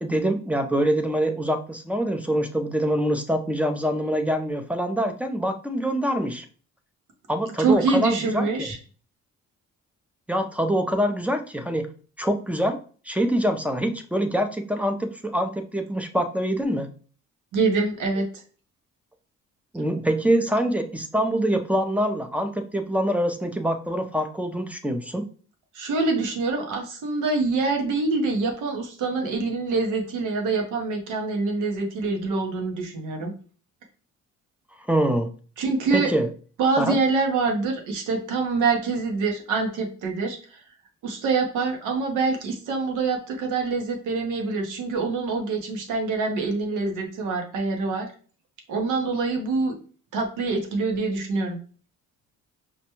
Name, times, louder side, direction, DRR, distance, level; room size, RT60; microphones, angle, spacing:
voice 1, 0.0-6.5 7.3-8.7 10.3-11.9 12.2-12.8 13.1-16.9 19.7-25.2 34.9-35.3 35.9-36.3 36.8-37.0, right 1 dB, 5° right, 6 dB, 0.5 m, -25 dB
voice 2, 7.6-8.8 17.5-18.4 25.7-33.3 35.6-36.1 36.6-40.6 41.0-48.1 48.7-49.8 50.1-51.6, right 4 dB, 90° right, 2 dB, 1.0 m, -25 dB
5.0 x 2.2 x 3.0 m, 0.40 s
cardioid pair, 90°, 30 cm